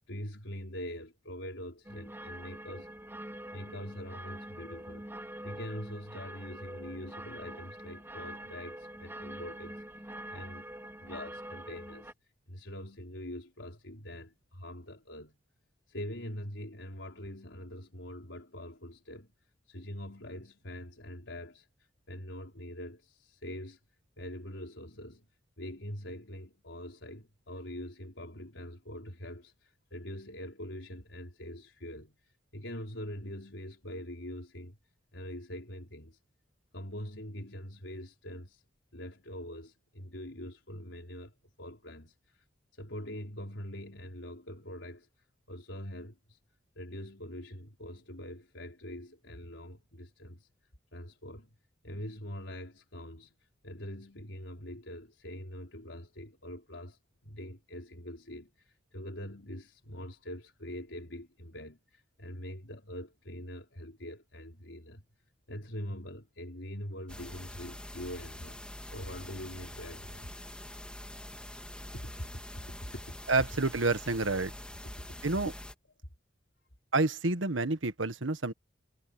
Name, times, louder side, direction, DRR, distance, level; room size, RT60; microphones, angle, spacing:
voice 1, 0.1-2.9 3.5-5.1 5.4-9.8 10.3-10.7 11.0-12.1 12.5-15.4 15.9-19.3 19.7-21.7 22.1-23.8 24.2-25.2 25.6-34.8 35.1-36.2 36.7-38.6 38.9-42.4 42.7-45.1 45.5-46.4 46.8-50.5 50.9-51.5 51.8-53.3 53.6-65.0 65.5-68.6 68.9-70.3 71.9-72.4 72.8-73.2 74.8-75.2, left 1 dB, 75° left, 4.5 m, -43 dB
sound 1, 1.8-12.1, right 1 dB, 10° right, 3.4 m, -45 dB
sound 2, 67.1-75.7, left 1 dB, 5° left, 2.3 m, -45 dB
voice 2, 73.3-74.5 75.2-75.5 76.9-78.5, right 3 dB, 90° right, 1.6 m, -28 dB
head